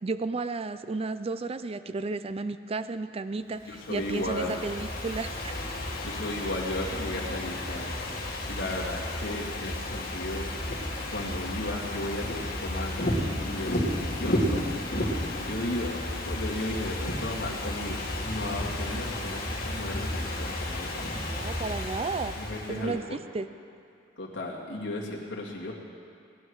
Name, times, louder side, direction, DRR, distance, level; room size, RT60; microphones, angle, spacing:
voice 1, 0.0-5.6 21.3-22.3 22.7-23.0 23.3-23.5, right 3 dB, 30° right, 12 dB, 0.4 m, -33 dB
Ocean / Fireworks, 3.6-22.9, left 1 dB, 50° left, 2.4 m, -32 dB
voice 2, 3.7-4.6 6.0-7.9 8.5-10.5 11.1-13.1 13.5-14.8 15.1-16.0 16.3-21.3 22.4-23.2 24.2-25.7, left 1 dB, 70° left, -3 dB, 2.2 m, -35 dB
19.0 x 11.0 x 4.8 m, 2.4 s
head